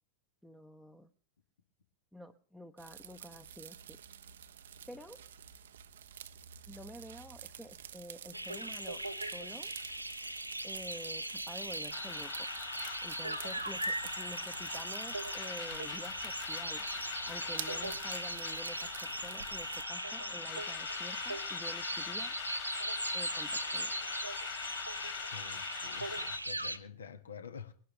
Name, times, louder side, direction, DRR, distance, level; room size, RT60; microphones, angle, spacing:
voice 1, 0.4-1.1 2.1-4.0 4.9-5.2 6.7-9.7 10.6-12.5 13.0-16.9 17.2-22.4 23.1-23.9, equal, 5° left, 0.9 m, -49 dB
sound 1, 2.8-19.8, right 9 dB, 60° right, 0.7 m, -50 dB
sound 2, 8.3-26.8, right 1 dB, 85° right, 0.9 m, -39 dB
sound 3, 11.9-26.4, left 13 dB, 40° left, 3.5 m, -44 dB
voice 2, 25.2-27.7, left 6 dB, 70° left, 1.5 m, -48 dB
22.0 x 11.5 x 3.3 m
figure-of-eight pair, 90°, 0 cm